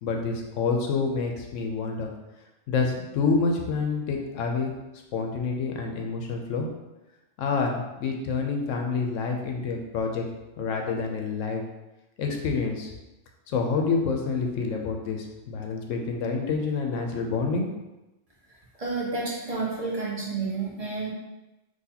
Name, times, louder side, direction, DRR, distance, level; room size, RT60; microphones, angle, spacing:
voice 1, 0.0-2.1 2.7-4.7 5.1-6.7 7.4-10.2 10.6-11.6 12.2-12.9 13.5-17.7, left 4 dB, 80° left, 2 dB, 1.0 m, -27 dB
voice 2, 18.8-21.1, right 3 dB, 35° right, -5 dB, 0.9 m, -30 dB
3.9 x 2.9 x 2.8 m, 1.0 s
omnidirectional pair, 1.3 m